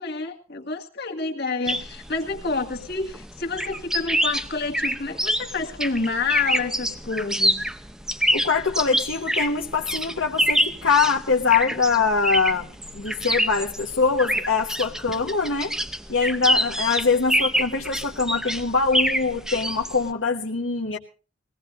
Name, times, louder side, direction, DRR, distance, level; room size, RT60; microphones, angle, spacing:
voice 1, 0.0-7.6, left 4 dB, 55° left, 3 dB, 2.1 m, -28 dB
sound 1, 1.7-20.1, equal, 5° right, 0.7 m, -26 dB
voice 2, 8.3-15.7 16.1-21.0, left 4 dB, 70° left, -1 dB, 1.2 m, -23 dB
22.0 x 17.5 x 2.6 m, 0.35 s
head